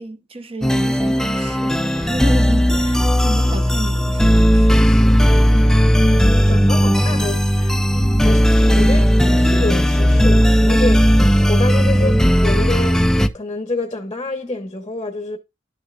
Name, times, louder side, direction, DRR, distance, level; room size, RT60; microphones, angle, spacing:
voice 1, 0.0-5.0, right 1 dB, 30° right, 1.1 m, -30 dB
sound 1, 0.6-13.3, equal, 5° left, 0.5 m, -15 dB
voice 2, 5.5-13.0 13.3-15.4, left 2 dB, 25° left, 0.9 m, -27 dB
11.0 x 6.5 x 2.4 m
head